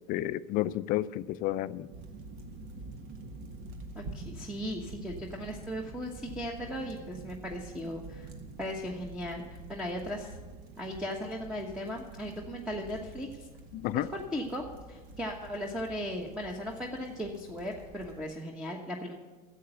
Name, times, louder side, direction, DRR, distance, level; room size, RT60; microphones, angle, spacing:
voice 1, 0.1-1.9 13.7-14.1, left 14 dB, 45° left, 16 dB, 0.5 m, -31 dB
sound 1, 1.9-18.3, right 3 dB, 55° right, 1.5 m, -47 dB
voice 2, 3.9-8.3 8.6-10.4 10.8-13.5 13.9-14.6 14.9-19.1, equal, 5° right, 1 dB, 1.2 m, -37 dB
10.5 x 8.0 x 7.9 m, 1.3 s
hypercardioid pair, 100°, 20 cm